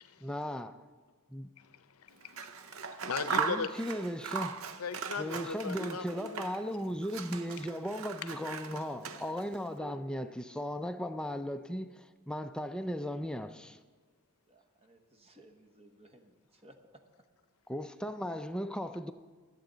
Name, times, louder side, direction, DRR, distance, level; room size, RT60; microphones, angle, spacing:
voice 1, 0.2-0.7 1.3-1.5 3.4-4.6 5.2-13.8 17.7-19.1, equal, 5° left, 0.4 m, -37 dB
voice 2, 1.6-3.7 4.8-6.4, left 5 dB, 80° left, 0.6 m, -39 dB
Scissors, 2.2-6.7 7.0-9.6, right 6 dB, 65° right, 0.7 m, -39 dB
voice 3, 9.8-10.3 14.5-17.0, right 5 dB, 25° right, 1.0 m, -56 dB
24.0 x 8.3 x 3.9 m
head